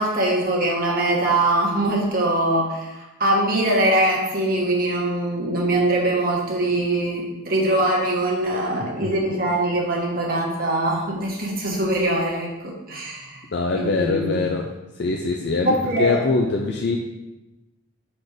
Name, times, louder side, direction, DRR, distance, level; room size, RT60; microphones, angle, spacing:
voice 1, 0.0-13.5 13.7-14.4 15.6-16.2, right 1 dB, 40° right, -2 dB, 1.4 m, -22 dB
voice 2, 13.5-14.7 15.0-17.0, left 3 dB, 50° left, 1 dB, 0.5 m, -23 dB
6.0 x 4.3 x 4.9 m, 1.0 s
head